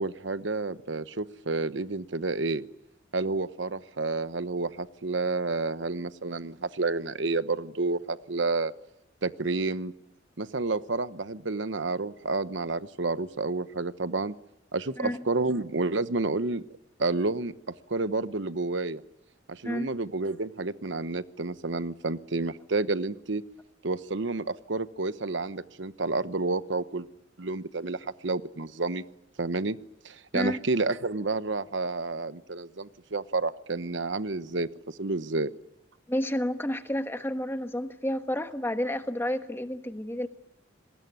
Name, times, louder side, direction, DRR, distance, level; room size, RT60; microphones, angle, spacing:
voice 1, 0.0-2.6 3.1-8.7 9.2-9.9 10.4-14.3 14.7-16.6 17.0-19.0 19.5-23.4 23.8-27.1 27.4-29.0 29.4-29.8 30.0-35.5, right 3 dB, 65° right, 13 dB, 1.0 m, -30 dB
voice 2, 36.1-40.3, left 1 dB, 10° left, 8 dB, 1.3 m, -30 dB
27.5 x 20.0 x 9.4 m, 0.84 s
head